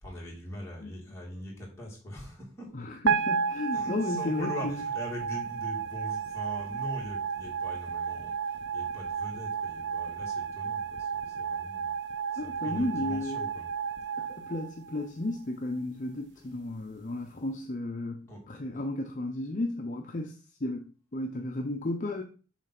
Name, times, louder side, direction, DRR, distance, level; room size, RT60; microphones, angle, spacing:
voice 1, 0.0-2.9 3.7-11.9 12.3-13.7 16.4-16.5 18.3-18.4, left 1 dB, 15° left, 2.5 m, -42 dB
voice 2, 2.7-4.8 12.4-13.5 14.2-20.8 21.1-22.2, left 1 dB, 40° left, 0.6 m, -34 dB
sound 1, 3.1-15.3, right 6 dB, 60° right, 0.5 m, -33 dB
7.3 x 3.2 x 5.9 m
head